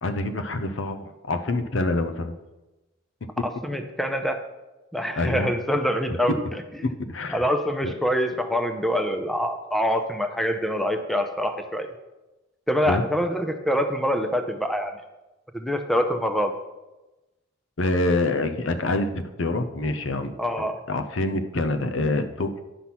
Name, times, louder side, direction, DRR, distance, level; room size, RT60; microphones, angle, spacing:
voice 1, 0.0-2.4 3.4-3.5 5.2-5.5 6.8-7.4 12.9-13.0 17.8-20.3 20.6-22.6, left 2 dB, 75° left, 9 dB, 0.8 m, -26 dB
voice 2, 3.4-4.4 4.9-6.6 7.3-11.9 12.7-14.9 15.5-16.5 20.4-20.8, equal, ahead, 6 dB, 0.6 m, -25 dB
10.0 x 5.7 x 6.0 m, 1.1 s
head